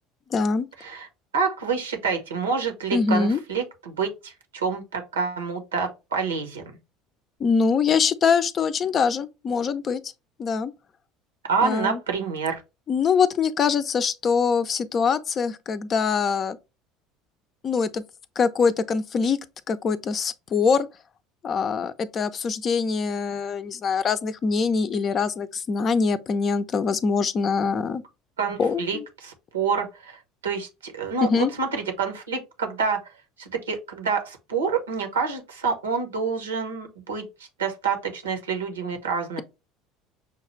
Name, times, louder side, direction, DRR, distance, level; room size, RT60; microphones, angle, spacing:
voice 1, 0.3-0.7 2.9-3.4 7.4-10.0 10.4-10.7 11.6-12.0 12.9-16.6 17.6-18.0 18.4-19.4 19.7-20.9 21.4-28.0 28.6-29.1 31.3-31.5, left 5 dB, 40° left, 0.5 m, -23 dB
voice 2, 1.3-6.8 11.4-12.6 28.4-33.0 33.4-37.2 37.6-39.4, right 5 dB, 85° right, 1.0 m, -27 dB
5.7 x 2.4 x 3.1 m
hypercardioid pair, 70°, 0 cm